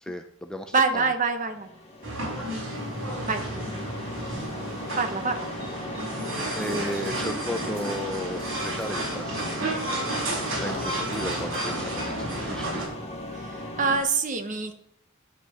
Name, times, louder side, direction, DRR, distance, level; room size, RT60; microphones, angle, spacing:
voice 1, 0.0-1.0 6.6-9.8 10.5-12.8, equal, 5° left, 5 dB, 0.5 m, -35 dB
voice 2, 0.7-1.7 3.3-3.4 5.0-5.5 13.3-14.7, right 4 dB, 40° right, 7 dB, 1.0 m, -25 dB
sound 1, 1.4-14.0, left 1 dB, 30° left, 1.4 m, -38 dB
sound 2, 2.0-12.9, right 1 dB, 90° right, 4.1 m, -32 dB
sound 3, 6.2-12.9, right 1 dB, 70° right, 2.6 m, -47 dB
10.0 x 5.7 x 5.8 m, 0.70 s
head